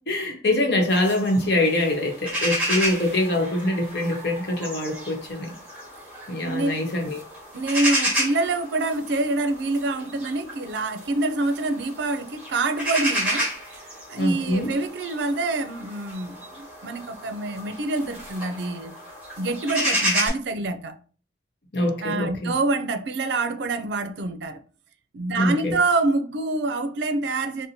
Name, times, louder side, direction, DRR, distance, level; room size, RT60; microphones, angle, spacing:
voice 1, 0.1-5.5 6.3-7.2 14.2-14.7 21.7-22.5 25.3-25.8, left 1 dB, 70° left, 0.9 m, -24 dB
sound 1, 0.9-20.3, equal, 5° right, 1.7 m, -31 dB
voice 2, 6.5-6.8 7.5-19.0 19.4-21.0 22.0-24.6 25.1-27.7, right 2 dB, 75° right, 0.4 m, -26 dB
4.2 x 2.1 x 2.7 m
head